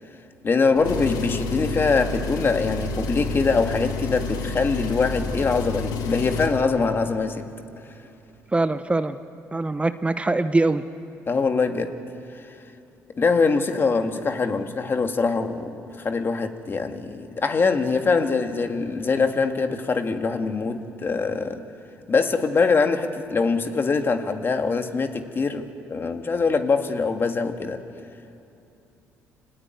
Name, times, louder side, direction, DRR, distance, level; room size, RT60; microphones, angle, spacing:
voice 1, 0.4-7.5 11.3-11.9 13.2-21.6 22.1-27.8, left 4 dB, 35° left, 6 dB, 2.1 m, -23 dB
Engine, 0.8-6.6, left 3 dB, 75° left, 1.9 m, -29 dB
voice 2, 8.5-9.2 9.5-10.8, right 2 dB, 20° right, 11 dB, 0.9 m, -22 dB
25.5 x 19.0 x 9.3 m, 2.8 s
supercardioid pair, 70°, 6 cm